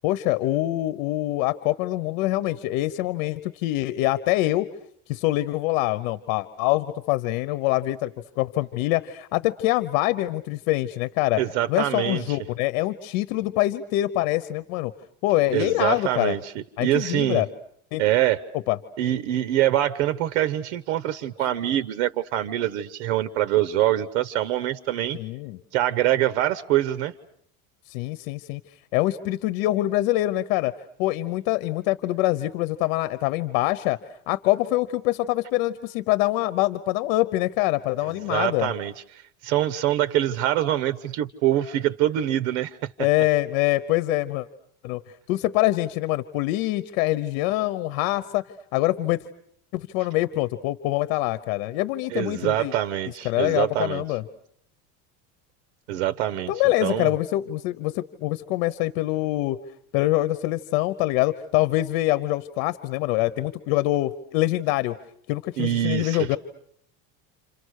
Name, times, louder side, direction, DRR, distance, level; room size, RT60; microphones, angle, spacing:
voice 1, 0.0-4.7 5.1-8.1 8.4-11.4 11.7-14.9 15.2-16.3 16.8-17.5 17.9-18.0 18.7-18.8 25.1-25.6 27.9-28.6 28.9-30.7 31.0-34.0 34.3-38.7 43.0-44.5 44.8-45.0 45.3-48.4 48.7-49.2 49.7-52.7 53.2-54.2 56.5-59.6 59.9-65.0 65.3-66.4, left 17 dB, 80° left, 14 dB, 1.1 m, -24 dB
voice 2, 11.4-12.4 15.5-16.5 16.8-17.4 18.0-18.4 19.0-25.2 25.7-27.1 38.3-38.9 39.4-42.9 52.1-54.0 55.9-56.5 56.8-57.1 65.6-66.3, right 13 dB, 90° right, 15 dB, 1.1 m, -24 dB
29.5 x 27.5 x 6.6 m, 0.68 s
cardioid pair, 135°, 39 cm